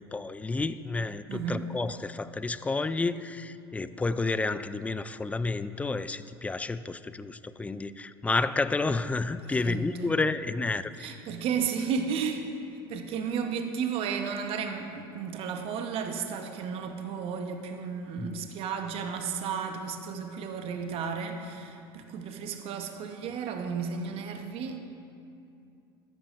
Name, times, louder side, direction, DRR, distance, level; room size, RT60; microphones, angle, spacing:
voice 1, 0.0-11.1 18.2-18.5, left 3 dB, 10° left, 14 dB, 0.3 m, -30 dB
voice 2, 1.3-1.6 9.4-10.2 11.0-12.5 12.9-24.8, right 6 dB, 50° right, 5 dB, 0.9 m, -33 dB
13.5 x 10.5 x 2.5 m, 2.5 s
hypercardioid pair, 90°, 12 cm